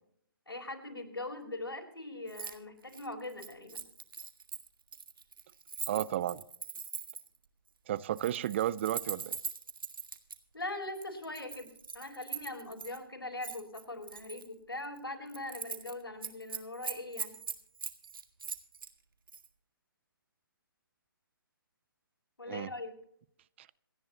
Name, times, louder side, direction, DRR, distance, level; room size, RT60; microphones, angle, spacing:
voice 1, 0.5-3.8 10.5-11.7 11.9-17.3 22.4-22.9, left 2 dB, 85° left, 4.4 m, -41 dB
Keys jangling, 2.3-2.6 2.8-7.4 8.0-10.4 11.0-13.0 13.4-14.5 14.8-15.0 15.3-15.9 16.2-18.9 19.3-19.5, right 5 dB, 70° right, 1.7 m, -41 dB
voice 2, 5.9-6.4 7.9-9.4 22.5-22.7 23.6-23.7, right 12 dB, 30° right, 0.4 m, -33 dB
27.0 x 10.5 x 3.0 m
figure-of-eight pair, 140°, 12 cm